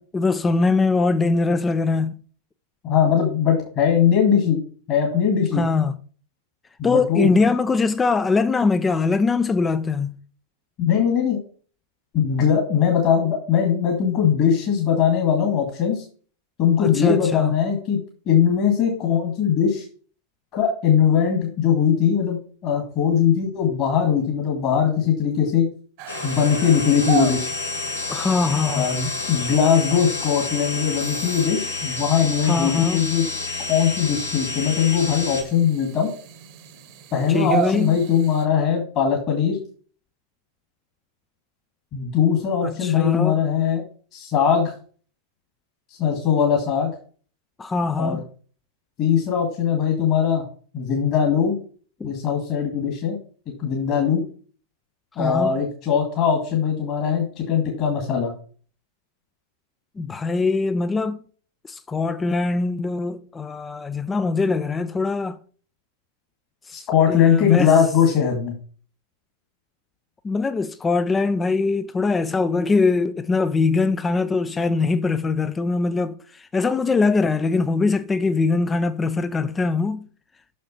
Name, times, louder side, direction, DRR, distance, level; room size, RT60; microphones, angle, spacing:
voice 1, 0.1-2.2 5.5-5.9 6.8-10.1 16.8-17.5 28.1-28.9 32.5-33.0 37.3-38.0 42.6-43.4 47.6-48.2 52.0-52.1 55.2-55.5 60.0-61.2 61.7-65.4 66.7-67.7 70.2-80.1, left 4 dB, 15° left, 0.4 m, -22 dB
voice 2, 2.8-4.6 4.9-5.6 6.8-7.4 10.8-11.4 12.1-16.0 16.6-18.0 18.3-19.9 20.5-22.4 22.6-25.7 26.2-27.5 28.7-33.2 33.7-36.1 37.1-39.6 41.9-43.8 44.1-44.7 46.0-46.9 48.0-48.2 49.0-50.4 50.7-51.6 52.0-53.2 53.6-54.2 55.2-58.3 66.9-68.5, left 7 dB, 40° left, 1.9 m, -20 dB
sound 1, 26.0-38.5, right 8 dB, 45° right, 1.0 m, -35 dB
sound 2, 26.1-35.4, left 3 dB, 75° left, 1.3 m, -29 dB
6.4 x 6.3 x 4.3 m
figure-of-eight pair, 90°, 0 cm